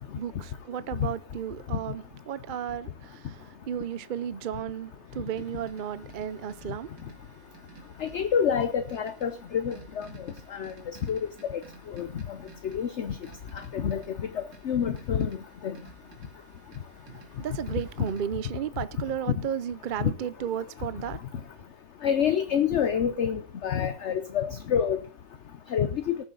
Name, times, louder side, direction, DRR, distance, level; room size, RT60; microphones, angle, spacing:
voice 1, 0.1-6.9 17.1-21.2, right 9 dB, 55° right, 0.5 m, -34 dB
sound 1, 5.3-18.2, right 3 dB, 80° right, 3.1 m, -52 dB
voice 2, 8.0-10.1 10.5-10.7 11.1-11.2 11.5-11.6 11.9-12.1 12.7-13.1 13.7-14.0 14.6-15.3 15.6-15.7 20.0-20.1 22.0-25.0 25.7-26.2, left 8 dB, 55° left, 1.0 m, -27 dB
19.0 x 7.2 x 3.9 m
omnidirectional pair, 1.7 m